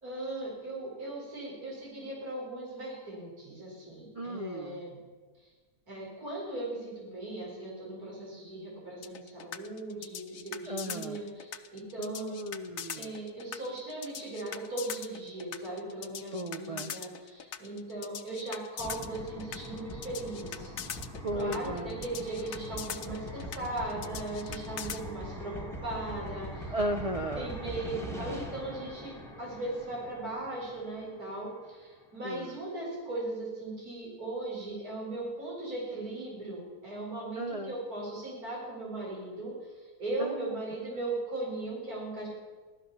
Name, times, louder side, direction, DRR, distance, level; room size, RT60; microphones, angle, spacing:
voice 1, 0.0-5.0 5.9-12.4 13.0-20.7 21.3-26.7 27.4-39.5 40.0-42.3, right 2 dB, 65° right, -4 dB, 5.4 m, -38 dB
voice 2, 4.1-4.8 10.7-11.2 12.0-13.1 16.3-16.9 21.2-22.0 26.7-27.5 32.2-32.6 37.4-37.7 40.2-40.6, right 1 dB, 35° right, 5 dB, 0.6 m, -35 dB
sound 1, 9.0-25.0, left 8 dB, 60° left, 1.2 m, -41 dB
sound 2, 18.8-31.5, equal, ahead, 1.7 m, -42 dB
15.5 x 12.5 x 7.1 m, 1.4 s
omnidirectional pair, 1.7 m